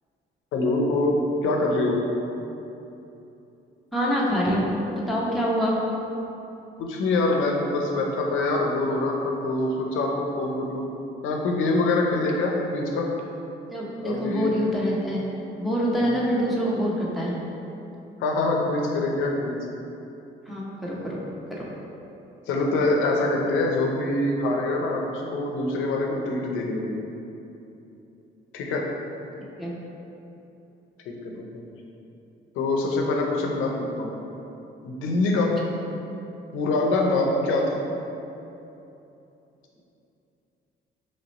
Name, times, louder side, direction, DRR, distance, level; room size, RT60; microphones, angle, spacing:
voice 1, 0.5-2.0 6.8-10.8 11.2-13.1 14.0-14.5 16.0-16.2 18.2-19.6 22.5-27.0 28.5-28.8 31.1-31.6 32.5-34.1 34.8-35.6 36.5-37.8, left 2 dB, 90° left, 0 dB, 0.6 m, -25 dB
voice 2, 3.9-4.7 5.1-5.8 13.7-15.2 15.6-17.4 20.5-21.2 21.5-21.7 29.6-29.8, equal, ahead, -6 dB, 0.8 m, -25 dB
3.1 x 2.9 x 4.0 m, 2.9 s
cardioid pair, 90°, 20 cm